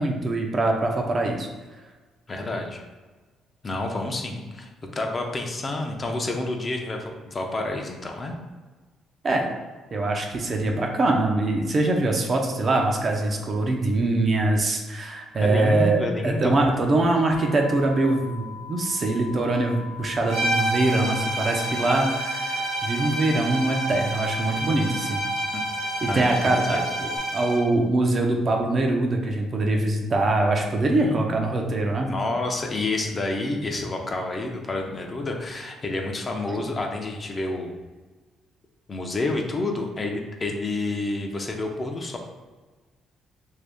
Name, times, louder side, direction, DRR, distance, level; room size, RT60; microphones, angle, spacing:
voice 1, 0.0-1.5 9.2-9.5 9.9-25.2 26.0-32.1, right 2 dB, 45° right, 1 dB, 0.6 m, -23 dB
voice 2, 2.3-2.8 3.6-8.3 15.4-16.6 25.5-25.6 26.1-26.9 30.8-31.3 31.9-37.7 38.9-42.2, left 2 dB, 35° left, 2 dB, 0.5 m, -29 dB
sound 1, 17.2-27.2, left 6 dB, 75° left, 0.6 m, -41 dB
sound 2, 20.3-27.7, right 1 dB, 85° right, 1.0 m, -28 dB
2.9 x 2.7 x 3.5 m, 1.3 s
cardioid pair, 85°, 0 cm